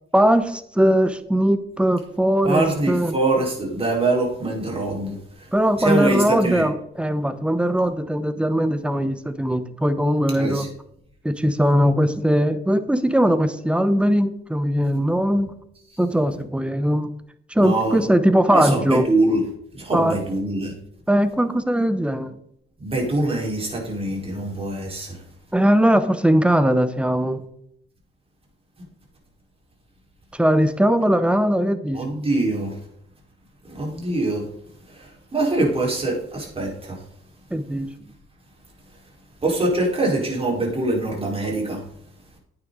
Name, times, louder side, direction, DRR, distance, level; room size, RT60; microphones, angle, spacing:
voice 1, 0.1-3.1 5.5-10.7 11.2-15.5 16.0-17.1 17.5-19.1 19.9-20.2 21.1-22.4 25.5-27.4 30.3-32.0 37.5-37.9, equal, 5° right, 11 dB, 1.0 m, -20 dB
voice 2, 2.4-5.1 5.8-6.7 10.4-10.7 17.6-18.1 18.5-19.4 19.7-20.7 22.8-25.2 31.9-32.7 33.7-34.4 35.0-37.0 39.4-41.8, right 2 dB, 30° right, -2 dB, 4.7 m, -23 dB
9.6 x 9.0 x 4.0 m, 0.72 s
cardioid pair, 90°, 20 cm